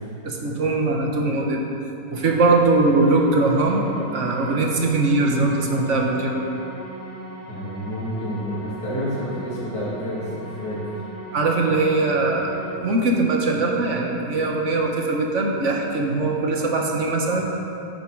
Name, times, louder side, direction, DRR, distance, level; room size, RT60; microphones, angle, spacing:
voice 1, 0.2-1.6 2.1-6.4 11.3-17.6, right 3 dB, 50° right, 0 dB, 1.3 m, -21 dB
sound 1, 2.1-12.7, right 1 dB, 50° left, 3.2 m, -39 dB
voice 2, 7.5-10.8, equal, 70° left, -10 dB, 2.7 m, -29 dB
11.0 x 7.2 x 4.6 m, 2.8 s
omnidirectional pair, 1.8 m